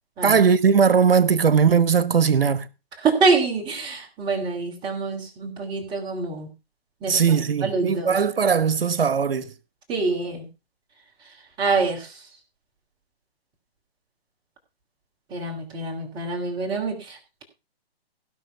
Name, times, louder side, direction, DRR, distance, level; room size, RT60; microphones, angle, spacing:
voice 1, 0.2-2.6 7.1-9.5, right 6 dB, 65° right, 1.3 m, -19 dB
voice 2, 3.0-6.5 7.0-7.2 7.6-8.2 9.9-10.5 11.6-12.1 15.3-17.4, right 4 dB, 15° right, 3.1 m, -25 dB
16.0 x 6.4 x 5.7 m
figure-of-eight pair, 140°, 30 cm